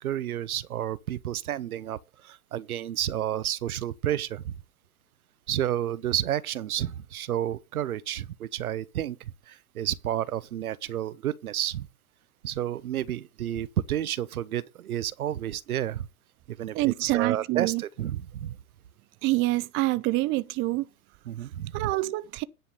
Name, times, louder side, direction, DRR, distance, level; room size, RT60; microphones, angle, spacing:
voice 1, 0.0-2.0 2.2-4.5 5.5-9.2 9.5-11.9 12.4-16.1 16.5-18.6 21.3-21.9, right 11 dB, 80° right, 0.9 m, -30 dB
voice 2, 16.7-17.8 19.2-20.9 21.7-22.4, right 19 dB, 30° right, 0.6 m, -26 dB
10.5 x 5.3 x 6.9 m
hypercardioid pair, 110°, 43 cm